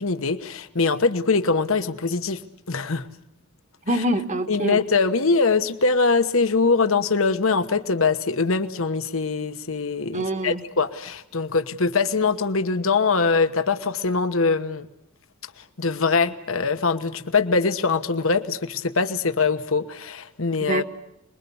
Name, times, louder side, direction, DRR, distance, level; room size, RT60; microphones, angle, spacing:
voice 1, 0.0-2.4 2.7-3.1 3.9-4.0 4.5-14.9 15.6-20.8, left 4 dB, 70° left, 9 dB, 1.2 m, -23 dB
voice 2, 3.9-4.8 10.1-10.6 20.6-20.8, right 1 dB, 35° right, 9 dB, 1.4 m, -25 dB
27.0 x 21.5 x 7.1 m, 0.81 s
head